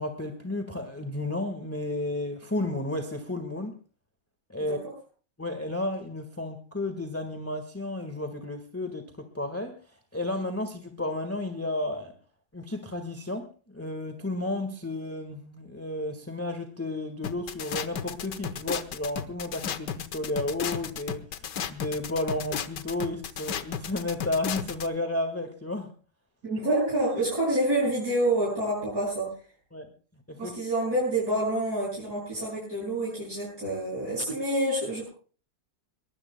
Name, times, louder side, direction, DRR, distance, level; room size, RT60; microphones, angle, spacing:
voice 1, 0.0-3.7 4.5-4.8 5.4-9.8 10.1-12.1 12.5-21.2 21.7-25.9 29.7-29.9 30.3-30.6, left 2 dB, 10° left, 6 dB, 1.4 m, -32 dB
sound 1, 17.2-24.9, left 8 dB, 70° left, 1.6 m, -33 dB
voice 2, 26.4-29.3 30.4-35.1, right 1 dB, 55° right, -7 dB, 8.1 m, -27 dB
22.5 x 22.0 x 2.2 m, 0.39 s
omnidirectional pair, 2.0 m